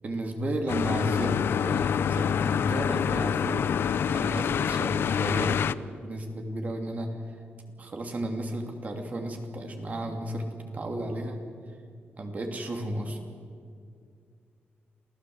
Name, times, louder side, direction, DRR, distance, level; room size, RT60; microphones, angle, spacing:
voice 1, 0.0-3.7 4.1-5.6 6.0-7.1 7.8-11.4 12.2-13.2, right 1 dB, 40° right, 4 dB, 3.0 m, -33 dB
sound 1, 0.7-5.7, left 8 dB, 70° left, 0.6 m, -26 dB
27.5 x 16.5 x 8.0 m, 2.2 s
wide cardioid pair, 140°, 4 cm